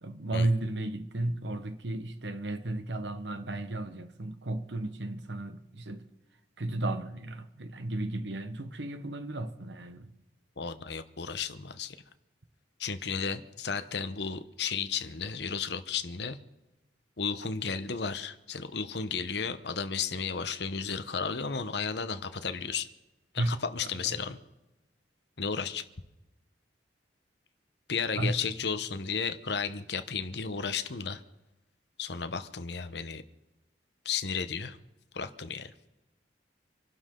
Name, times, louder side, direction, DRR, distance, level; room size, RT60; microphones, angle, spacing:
voice 1, 0.0-6.0 6.6-10.1 23.4-23.5 28.1-28.3, right 2 dB, 75° right, 1.2 m, -33 dB
voice 2, 10.6-12.0 12.8-16.4 17.2-22.9 23.3-24.4 25.4-25.8 27.9-31.2 32.0-33.2 34.0-34.8 35.1-35.7, left 6 dB, 70° left, 1.0 m, -33 dB
26.5 x 12.0 x 3.8 m
head